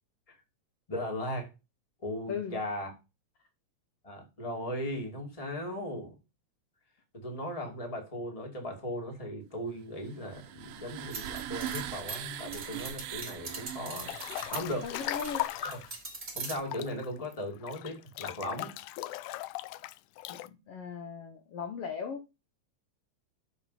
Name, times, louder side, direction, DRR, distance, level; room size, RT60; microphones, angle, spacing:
voice 1, 0.9-1.5 2.0-2.9 4.0-6.1 7.1-14.1 14.5-14.8 15.6-15.7 16.3-18.7, left 1 dB, 10° left, 2.1 m, -37 dB
voice 2, 2.3-2.6 14.8-15.5 20.3-22.3, left 6 dB, 65° left, 1.7 m, -38 dB
sound 1, 10.1-15.9, right 11 dB, 75° right, 1.4 m, -42 dB
sound 2, 11.1-15.5 15.7-16.5, right 4 dB, 20° right, 1.8 m, -41 dB
Breathing / Bathtub (filling or washing) / Splash splatter, 14.0-15.9 16.5-20.5, left 17 dB, 90° left, 2.1 m, -38 dB
7.2 x 6.3 x 4.2 m
omnidirectional pair, 3.5 m